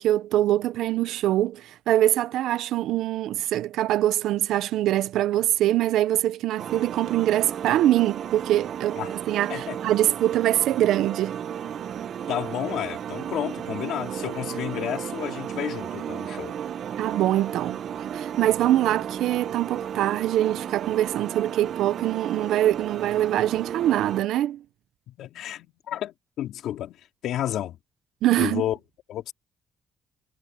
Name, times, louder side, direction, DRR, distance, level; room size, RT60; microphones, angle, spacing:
voice 1, 0.0-11.4 17.0-17.9 18.1-24.6 28.2-28.6, right 13 dB, 85° right, 0.9 m, -23 dB
sound 1, 6.6-24.2, right 9 dB, 65° right, 1.2 m, -34 dB
voice 2, 12.3-16.6 25.1-27.8 28.4-28.8 29.1-29.3, left 12 dB, 80° left, 4.4 m, -31 dB
cardioid pair, 90°, 0 cm